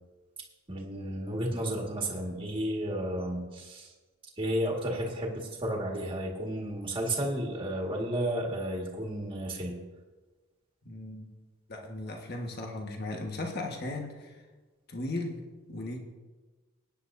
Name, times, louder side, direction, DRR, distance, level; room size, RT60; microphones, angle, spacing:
voice 1, 0.7-3.9 4.4-9.7, right 1 dB, 25° right, -2 dB, 1.8 m, -32 dB
voice 2, 10.8-11.3 11.7-14.4 14.9-16.0, left 2 dB, 45° left, 1 dB, 1.5 m, -37 dB
18.5 x 9.7 x 2.7 m, 1.3 s
head